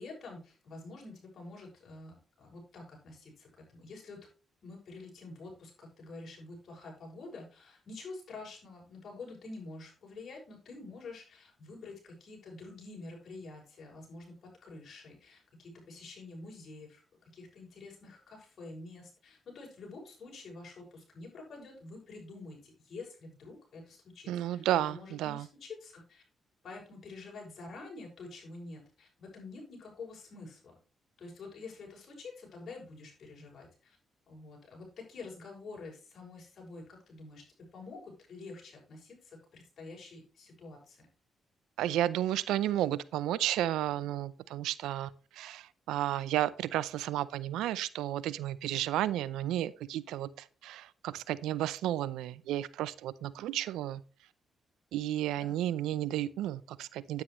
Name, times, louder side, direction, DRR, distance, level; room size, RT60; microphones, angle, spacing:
voice 1, 0.0-4.3 4.6-26.2 26.6-30.7 31.2-34.0 34.3-41.1 55.3-55.7, left 3 dB, 60° left, 6.5 m, -48 dB
voice 2, 24.3-25.5 41.8-54.0 54.9-57.2, right 13 dB, 90° right, 0.6 m, -32 dB
10.0 x 9.4 x 3.1 m
cardioid pair, 65°, 0 cm